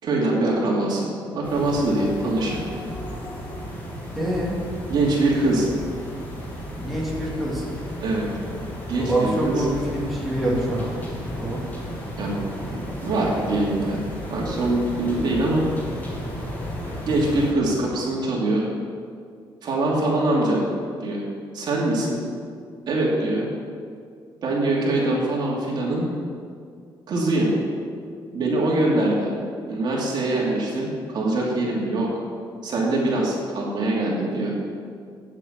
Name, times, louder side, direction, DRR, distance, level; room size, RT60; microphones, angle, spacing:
voice 1, 0.0-2.6 4.9-5.7 8.0-8.3 8.9-9.6 12.2-15.6 17.1-18.7 19.6-20.7 21.0-21.2 21.5-22.2 22.9-23.5 24.4-26.1 27.1-27.5 28.3-29.3 29.7-32.1 32.6-34.5, right 2 dB, 55° right, -4 dB, 2.8 m, -23 dB
sound 1, 1.4-17.5, equal, 20° left, 2.8 m, -34 dB
voice 2, 4.1-4.5 6.8-7.6 9.0-10.9 11.3-11.6, right 1 dB, ahead, -6 dB, 2.7 m, -25 dB
9.0 x 8.1 x 7.4 m, 2.2 s
cardioid pair, 125°, 9 cm